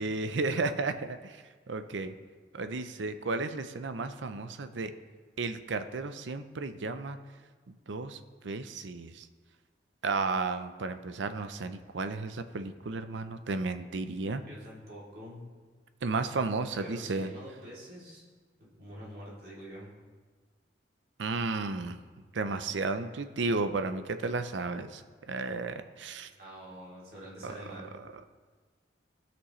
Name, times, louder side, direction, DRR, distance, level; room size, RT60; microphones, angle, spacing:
voice 1, 0.0-1.4 1.7-2.1 2.5-4.9 5.4-7.2 7.9-9.3 10.0-14.4 16.0-17.3 21.2-22.0 22.3-25.0 25.3-26.3 27.4-27.5, right 3 dB, 80° right, 10 dB, 0.6 m, -33 dB
voice 2, 14.5-15.5 16.8-18.2 18.8-20.0 26.2-28.0, equal, 50° right, -7 dB, 3.0 m, -46 dB
17.5 x 6.1 x 3.2 m, 1.4 s
head